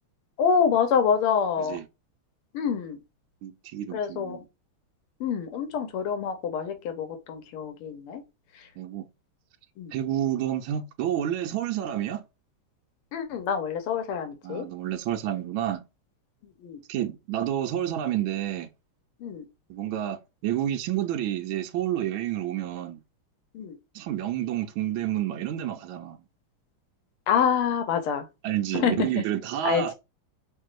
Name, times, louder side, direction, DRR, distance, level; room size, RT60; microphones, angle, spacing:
voice 1, 0.4-1.8 2.5-3.0 3.9-4.4 5.2-8.2 9.8-9.9 13.1-14.7 16.6-16.8 19.2-19.5 23.5-23.8 27.3-28.3 28.7-29.1 29.6-29.9, left 7 dB, 85° left, 1.7 m, -26 dB
voice 2, 3.4-4.5 8.8-9.1 9.9-12.2 14.4-15.8 16.9-18.7 19.7-23.0 23.9-26.2 28.4-29.9, right 11 dB, 75° right, 1.4 m, -29 dB
6.2 x 2.6 x 2.4 m
omnidirectional pair, 2.4 m